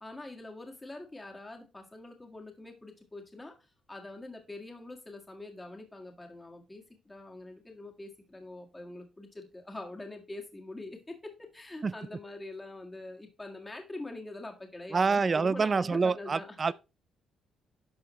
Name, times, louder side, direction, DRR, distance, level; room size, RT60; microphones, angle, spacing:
voice 1, 0.0-3.6 3.9-16.7, left 2 dB, 15° left, 1.8 m, -44 dB
voice 2, 14.9-16.7, right 4 dB, 35° right, 0.4 m, -27 dB
10.5 x 5.6 x 3.2 m
cardioid pair, 90°, 0 cm